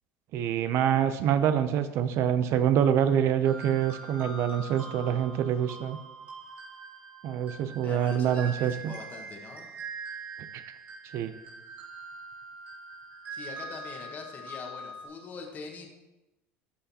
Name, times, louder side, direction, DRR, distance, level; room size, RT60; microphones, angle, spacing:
voice 1, 0.3-6.0 7.2-8.9 10.5-10.6 11.1-11.3, right 9 dB, 55° right, 11 dB, 0.5 m, -26 dB
sound 1, 3.4-15.1, right 3 dB, 30° right, 2.2 m, -43 dB
voice 2, 7.8-9.7 13.3-15.9, left 4 dB, 35° left, 1 dB, 1.4 m, -43 dB
12.5 x 5.6 x 2.8 m, 0.99 s
supercardioid pair, 120°, 5 cm